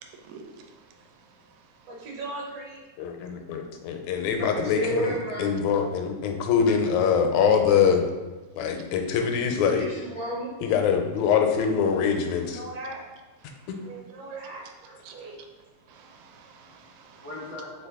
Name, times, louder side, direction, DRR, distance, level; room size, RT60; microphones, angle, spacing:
voice 1, 0.0-0.8 9.5-9.7 15.0-15.3 15.9-17.3, right 5 dB, 85° right, 4 dB, 1.9 m, -46 dB
voice 2, 1.9-2.8 12.5-13.0 13.8-15.4, right 2 dB, 65° right, -3 dB, 1.8 m, -39 dB
voice 3, 3.0-5.1 5.4-8.0 8.6-9.8 10.6-12.6, left 7 dB, 80° left, 4 dB, 1.9 m, -23 dB
voice 4, 4.3-5.6 9.7-10.6 17.2-17.9, right 1 dB, 45° right, -9 dB, 0.7 m, -32 dB
4.4 x 3.5 x 3.5 m, 1.2 s
omnidirectional pair, 3.3 m